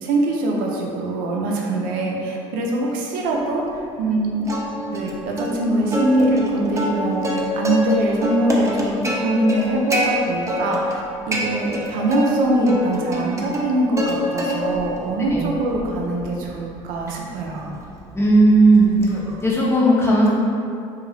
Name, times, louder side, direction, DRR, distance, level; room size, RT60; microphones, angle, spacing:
voice 1, 0.0-3.6 4.0-4.5 4.9-11.0 11.3-17.7, right 1 dB, 65° right, -1 dB, 0.5 m, -23 dB
Plucked string instrument, 4.5-5.1 5.4-5.5 5.9-7.9 8.2-10.1 10.5-11.0 11.3-12.3 12.7-14.1 14.4-14.9 15.3-19.5, equal, 20° right, 0.5 m, -26 dB
voice 2, 18.1-18.9 19.4-20.3, right 2 dB, 15° left, -6 dB, 0.7 m, -15 dB
2.6 x 2.3 x 3.0 m, 2.5 s
hypercardioid pair, 70°, 15 cm